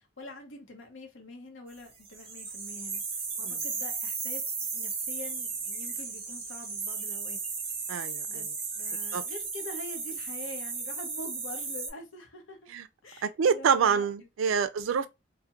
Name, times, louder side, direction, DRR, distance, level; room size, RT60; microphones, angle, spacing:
voice 1, 0.0-7.7 8.3-8.5 8.8-12.6 13.0-14.9, left 2 dB, 80° left, 0.7 m, -45 dB
sound 1, 2.0-11.9, right 4 dB, 30° right, 0.5 m, -35 dB
voice 2, 7.9-8.4 9.1-9.2 12.7-12.8 13.2-15.1, right 6 dB, 85° right, 0.3 m, -26 dB
2.3 x 2.1 x 2.8 m
head